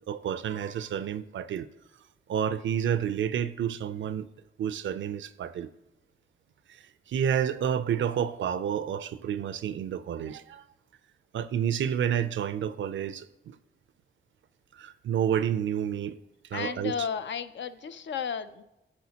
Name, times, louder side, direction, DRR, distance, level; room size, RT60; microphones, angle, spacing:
voice 1, 0.1-1.7 2.3-4.3 4.6-5.7 6.7-10.6 11.3-13.6 14.7-16.2 16.5-16.9, right 9 dB, 75° right, 0.4 m, -30 dB
voice 2, 16.5-18.6, left 7 dB, 70° left, 0.5 m, -33 dB
12.0 x 4.3 x 2.8 m
cardioid pair, 60°, 20 cm